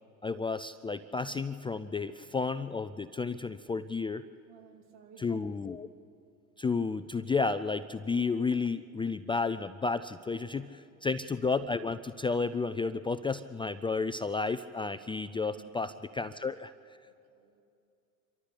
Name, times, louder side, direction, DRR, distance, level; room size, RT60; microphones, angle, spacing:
voice 1, 0.2-4.2 5.2-5.9 6.6-17.0, left 4 dB, 10° left, 12 dB, 0.5 m, -32 dB
voice 2, 4.5-5.3 10.9-11.0 15.5-15.7 16.2-16.3 17.0-17.6, right 8 dB, 60° right, 3 dB, 3.4 m, -57 dB
26.5 x 13.0 x 8.4 m, 2.5 s
hypercardioid pair, 85°, 42 cm